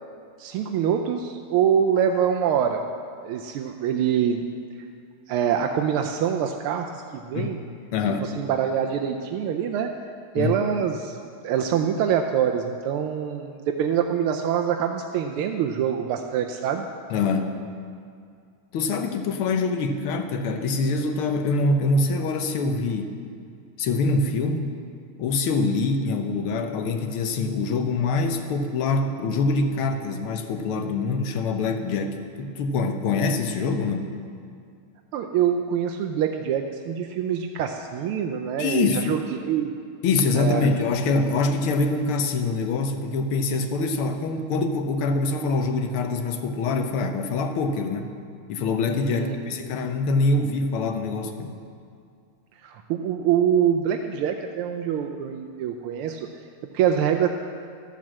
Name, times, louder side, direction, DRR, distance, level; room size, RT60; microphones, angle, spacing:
voice 1, 0.4-2.8 3.2-4.4 5.3-7.6 8.1-9.9 10.3-11.1 11.4-16.9 35.1-39.7 40.3-40.7 49.1-49.5 52.6-56.3 56.7-57.3, right 8 dB, 85° right, 4 dB, 1.5 m, -25 dB
voice 2, 7.9-8.3 10.4-10.5 17.1-17.5 18.7-23.1 23.8-24.7 25.2-34.1 38.6-39.2 40.0-48.1 48.5-51.5, left 3 dB, 80° left, 6 dB, 1.8 m, -24 dB
13.0 x 7.6 x 7.4 m, 2.3 s
omnidirectional pair, 2.4 m